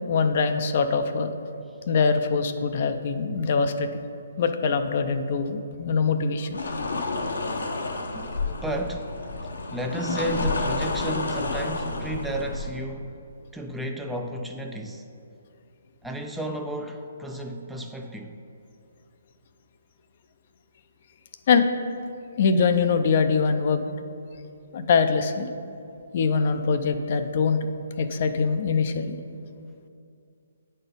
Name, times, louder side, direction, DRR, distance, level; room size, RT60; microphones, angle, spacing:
voice 1, 0.1-1.3 1.9-3.9 4.4-6.6 8.4-8.5 21.5-21.6 22.4-23.8 24.7-25.5 26.1-27.6 28.0-29.2, left 5 dB, 50° left, 8 dB, 0.5 m, -23 dB
sound 1, 6.5-12.7, left 3 dB, 80° left, 0.9 m, -30 dB
voice 2, 8.1-9.2 9.7-13.2 13.5-15.1 16.0-18.4, right 1 dB, 5° right, 3 dB, 0.4 m, -33 dB
8.8 x 4.4 x 5.2 m, 2.5 s
hypercardioid pair, 145°, 0 cm